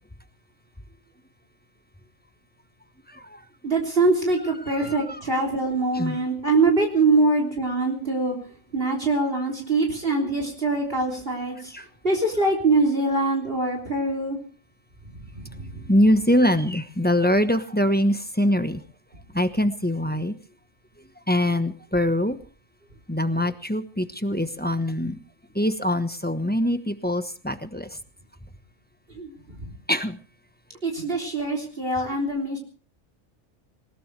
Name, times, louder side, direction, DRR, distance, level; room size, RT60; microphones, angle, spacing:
voice 1, 3.6-8.4 8.7-11.7 12.0-14.4 15.1-15.9 29.1-29.7 30.8-32.6, right 2 dB, 50° right, 2 dB, 3.7 m, -24 dB
voice 2, 15.9-18.8 19.3-20.3 21.3-22.4 23.1-25.2 25.5-27.9 29.9-30.2, left 1 dB, 10° left, 8 dB, 1.1 m, -23 dB
20.5 x 20.0 x 3.4 m, 0.39 s
omnidirectional pair, 1.3 m